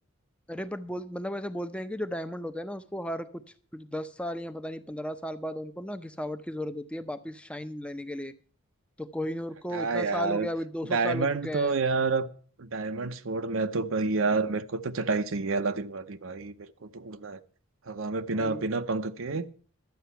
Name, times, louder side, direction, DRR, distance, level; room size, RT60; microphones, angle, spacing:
voice 1, 0.5-3.4 3.7-8.3 9.0-11.8 18.3-18.7, equal, 5° left, 0.7 m, -35 dB
voice 2, 9.7-10.5 10.9-12.3 12.6-17.4 17.9-19.5, right 3 dB, 70° right, 0.8 m, -29 dB
12.0 x 8.5 x 6.9 m
head